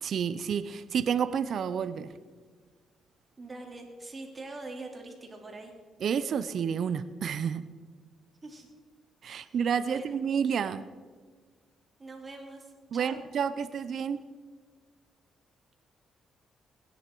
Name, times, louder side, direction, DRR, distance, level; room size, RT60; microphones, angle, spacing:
voice 1, 0.0-2.1 6.0-7.6 9.2-10.8 12.9-14.2, right 7 dB, 60° right, 14 dB, 0.6 m, -30 dB
voice 2, 3.4-5.7 8.4-8.7 9.4-9.6 9.8-10.2 12.0-13.2, right 2 dB, 25° right, 2 dB, 3.0 m, -43 dB
20.0 x 10.0 x 4.6 m, 1.5 s
cardioid pair, 90°, 0 cm